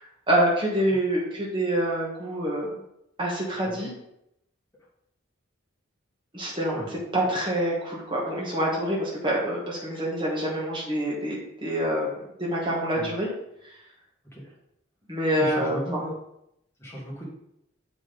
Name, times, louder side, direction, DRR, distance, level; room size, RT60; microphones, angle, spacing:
voice 1, 0.0-2.7 3.2-3.9 6.3-6.8 7.1-13.3 13.6-13.7 15.1-16.0, right 1 dB, 25° right, -4 dB, 1.4 m, -26 dB
voice 2, 15.4-16.1 16.8-17.3, equal, 10° left, -5 dB, 1.6 m, -36 dB
7.4 x 5.0 x 3.9 m, 0.80 s
head